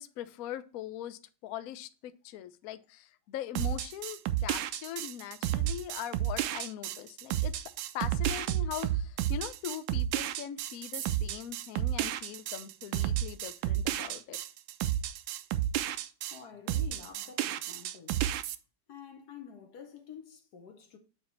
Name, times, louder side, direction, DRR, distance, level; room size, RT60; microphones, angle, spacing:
voice 1, 0.0-7.6 7.9-14.4, left 11 dB, 80° left, 0.7 m, -41 dB
sound 1, 3.6-16.4 16.7-18.6, right 12 dB, 80° right, 1.3 m, -32 dB
voice 2, 16.3-18.3 18.9-21.0, left 7 dB, 60° left, 1.2 m, -49 dB
8.6 x 2.9 x 4.1 m
omnidirectional pair, 2.2 m